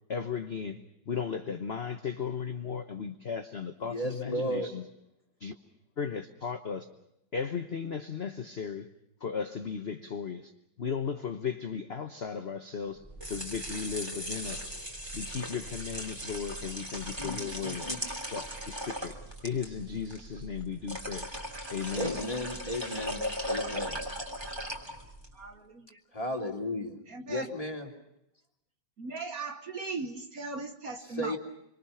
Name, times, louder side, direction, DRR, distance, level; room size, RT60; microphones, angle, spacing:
voice 1, 0.1-4.8 5.4-5.5 6.0-6.9 7.3-8.9 9.2-10.5 10.8-14.7 15.1-17.9 18.3-19.1 19.4-21.3 21.7-22.2, left 6 dB, 40° left, 7 dB, 1.1 m, -36 dB
voice 2, 3.9-4.7 17.2-18.0 22.0-23.2 23.5-24.0 26.1-27.0 27.2-27.9 31.1-31.4, left 1 dB, 15° left, 2 dB, 3.0 m, -34 dB
sound 1, 13.0-25.3, equal, 15° right, 3.1 m, -38 dB
voice 3, 25.3-26.0 27.1-27.5 29.0-31.4, right 3 dB, 50° right, 6 dB, 1.6 m, -38 dB
26.5 x 25.0 x 5.7 m, 0.83 s
omnidirectional pair, 2.1 m